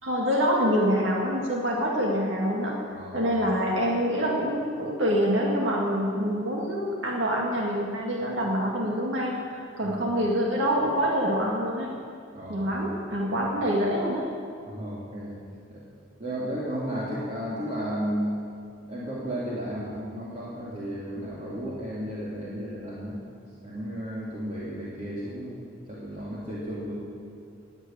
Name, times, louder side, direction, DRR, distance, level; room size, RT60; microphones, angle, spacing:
voice 1, 0.0-2.8 3.1-11.9 12.5-14.3, equal, 65° right, -2 dB, 2.1 m, -26 dB
voice 2, 2.9-3.3 9.8-10.1 12.3-12.7 14.7-15.3 15.7-15.8 16.2-18.4 18.8-23.2 23.6-26.9, equal, 35° right, -7 dB, 2.8 m, -33 dB
20.0 x 8.2 x 8.8 m, 2.4 s
head